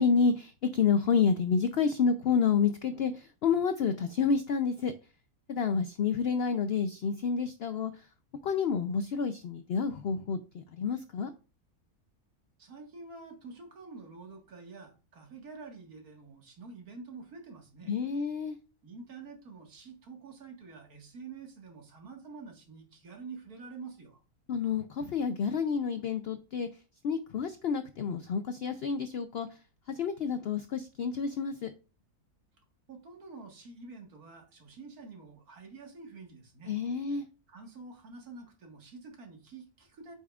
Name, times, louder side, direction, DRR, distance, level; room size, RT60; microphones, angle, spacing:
voice 1, 0.0-4.9 5.5-8.0 8.4-11.3 17.9-18.6 24.5-26.7 27.0-29.5 29.9-31.7 36.7-37.3, left 6 dB, 75° left, 9 dB, 0.5 m, -29 dB
voice 2, 12.6-17.9 18.8-24.2 32.9-36.7 37.5-40.2, right 4 dB, 70° right, 2 dB, 2.1 m, -48 dB
8.3 x 5.6 x 2.4 m, 0.34 s
omnidirectional pair, 1.6 m